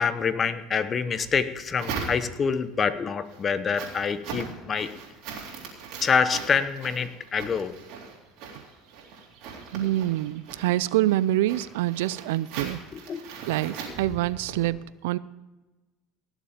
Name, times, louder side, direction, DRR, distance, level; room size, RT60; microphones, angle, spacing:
voice 1, 0.0-4.9 6.0-7.8 12.9-13.2, left 6 dB, 30° left, 13 dB, 0.9 m, -26 dB
sound 1, 1.2-2.6 3.1-14.7, right 5 dB, 70° right, 3.7 m, -40 dB
voice 2, 9.7-12.8 13.5-15.2, right 15 dB, 85° right, 19 dB, 0.4 m, -26 dB
17.5 x 7.2 x 5.0 m, 1.1 s
supercardioid pair, 105°, 0 cm